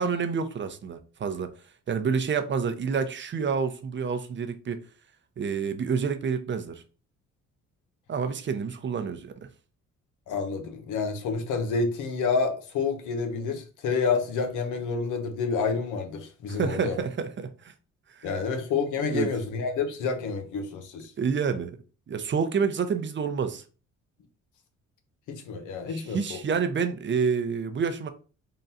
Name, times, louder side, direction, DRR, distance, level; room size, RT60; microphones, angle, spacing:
voice 1, 0.0-1.5 1.9-4.8 5.4-6.8 8.1-9.3 16.5-17.7 18.1-18.3 19.1-19.3 21.2-21.8 22.1-23.6 25.9-28.1, right 6 dB, 40° right, 0.6 m, -28 dB
voice 2, 10.3-17.0 18.2-21.1 25.3-26.4, left 5 dB, 85° left, 0.9 m, -29 dB
3.8 x 2.2 x 4.0 m
cardioid pair, 90°, 30 cm